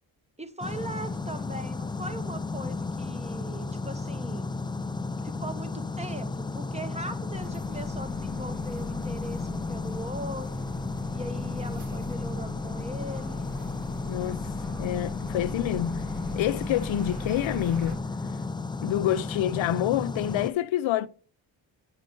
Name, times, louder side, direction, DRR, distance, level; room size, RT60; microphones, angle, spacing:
voice 1, 0.4-4.5 5.2-10.7 11.1-13.5, right 1 dB, 15° right, 1.0 m, -39 dB
sound 1, 0.6-20.5, left 3 dB, 10° left, 0.3 m, -33 dB
sound 2, 7.3-18.0, equal, 40° right, 1.9 m, -42 dB
voice 2, 14.1-14.5 14.8-16.1 16.4-18.0 18.8-21.1, left 12 dB, 70° left, 0.6 m, -27 dB
6.6 x 5.4 x 4.6 m
cardioid pair, 55°, 47 cm